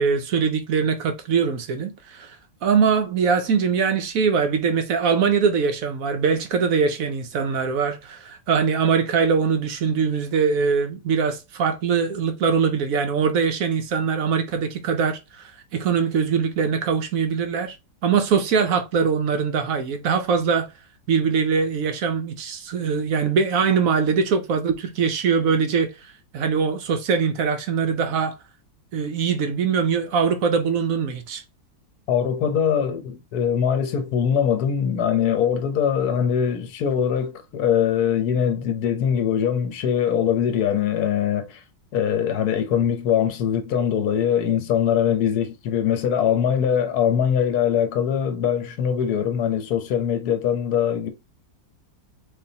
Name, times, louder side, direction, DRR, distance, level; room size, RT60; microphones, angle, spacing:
voice 1, 0.0-2.4 2.6-17.8 18.0-20.7 21.1-25.9 26.3-28.4 28.9-31.4, right 6 dB, 70° right, 0.8 m, -22 dB
voice 2, 32.1-41.6 41.9-51.1, left 8 dB, 60° left, 1.2 m, -22 dB
4.1 x 3.7 x 2.7 m
omnidirectional pair, 2.1 m